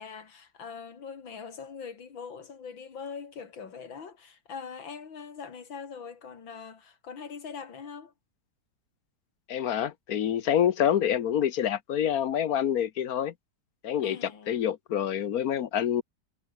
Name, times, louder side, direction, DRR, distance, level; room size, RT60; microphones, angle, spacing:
voice 1, 0.0-8.1 14.0-14.6, left 6 dB, 90° left, 3.2 m, -42 dB
voice 2, 9.5-13.3 13.8-16.0, left 9 dB, 60° left, 1.2 m, -27 dB
omnidirectional pair, 2.0 m